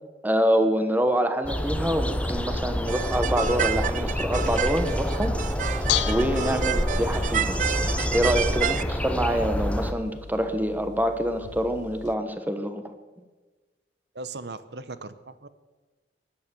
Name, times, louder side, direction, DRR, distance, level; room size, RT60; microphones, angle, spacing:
voice 1, 0.2-5.4 5.7-7.6 8.1-12.9, equal, 10° right, 8 dB, 1.1 m, -26 dB
sound 1, 1.4-9.9, equal, 10° left, 0.7 m, -28 dB
sound 2, 2.9-8.8, right 9 dB, 45° right, 0.4 m, -30 dB
Bell / Dishes pots and pans, 5.5-12.1, left 10 dB, 80° left, 0.6 m, -36 dB
voice 2, 14.1-15.5, right 3 dB, 70° right, 14 dB, 0.9 m, -38 dB
16.0 x 10.5 x 6.9 m, 1.3 s
head